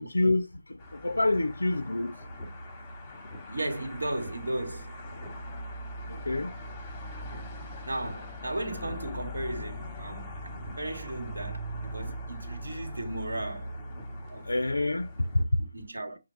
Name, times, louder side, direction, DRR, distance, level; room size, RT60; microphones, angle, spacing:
voice 1, 0.0-2.2 6.1-6.5 14.4-15.6, left 2 dB, 70° left, 0.4 m, -27 dB
sound 1, 0.8-15.4, equal, 15° left, 1.0 m, -40 dB
voice 2, 3.5-4.9 7.9-13.7 14.3-14.5 15.7-16.2, right 1 dB, 70° right, 1.3 m, -35 dB
6.0 x 2.2 x 3.1 m
figure-of-eight pair, 150°, 0 cm